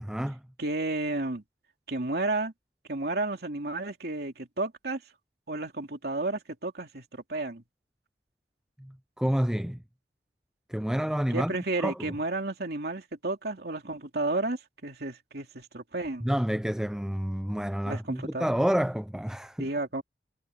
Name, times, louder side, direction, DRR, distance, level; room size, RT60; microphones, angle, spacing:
voice 1, 0.0-0.4 8.8-9.8 10.7-12.1 16.2-19.7, equal, 5° right, 0.4 m, -29 dB
voice 2, 0.6-1.4 1.9-2.5 2.9-5.0 5.5-7.6 11.3-16.3 17.9-18.5 19.6-20.0, right 2 dB, 65° right, 2.8 m, -32 dB
head